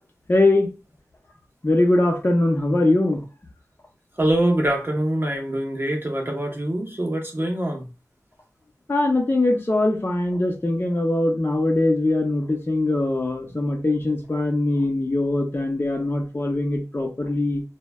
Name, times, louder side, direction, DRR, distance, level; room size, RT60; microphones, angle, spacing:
voice 1, 0.3-0.7 1.6-3.2 8.9-17.6, left 2 dB, 35° left, 0.7 m, -21 dB
voice 2, 4.2-7.9, right 1 dB, 40° right, 0.8 m, -24 dB
3.1 x 2.2 x 2.2 m
wide cardioid pair, 50°, 6 cm